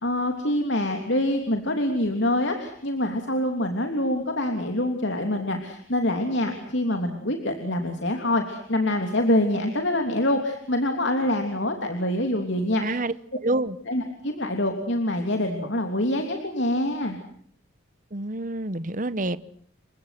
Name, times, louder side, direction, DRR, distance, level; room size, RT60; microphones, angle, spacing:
voice 1, 0.0-13.0 13.9-17.2, left 1 dB, 60° left, 3.2 m, -25 dB
voice 2, 12.8-13.1 13.4-13.8 18.1-19.4, right 2 dB, 40° right, 1.0 m, -27 dB
30.0 x 25.0 x 6.0 m
head